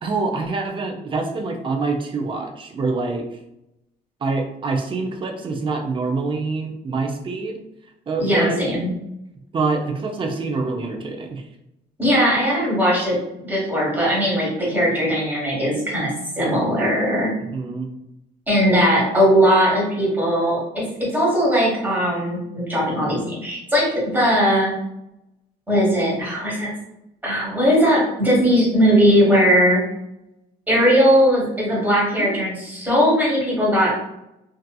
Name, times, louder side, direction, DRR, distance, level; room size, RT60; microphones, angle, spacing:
voice 1, 0.0-3.4 4.2-7.6 8.1-8.6 9.5-11.4 17.5-17.9 32.2-32.4, right 3 dB, 30° right, 2 dB, 0.5 m, -25 dB
voice 2, 8.2-8.9 12.0-13.2 13.4-16.1 16.4-17.3 18.5-24.7 25.7-26.7 27.2-29.8 30.7-33.9, equal, 10° right, -6 dB, 1.3 m, -19 dB
2.7 x 2.4 x 2.3 m, 0.86 s
cardioid pair, 110°, 17 cm